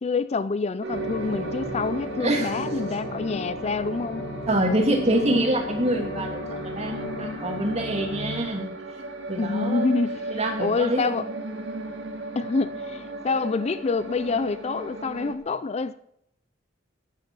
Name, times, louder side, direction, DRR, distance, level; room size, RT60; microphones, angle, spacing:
voice 1, 0.0-4.3 4.9-5.2 9.4-11.3 12.4-15.9, left 4 dB, 35° left, 0.4 m, -27 dB
sound 1, 0.8-15.4, right 3 dB, 75° right, 2.1 m, -36 dB
sound 2, 0.9-8.4, left 2 dB, 65° left, 1.9 m, -35 dB
voice 2, 2.2-3.0 4.5-8.7 9.3-9.9 10.3-11.1, right 1 dB, 35° right, 2.7 m, -26 dB
13.5 x 10.5 x 6.2 m
head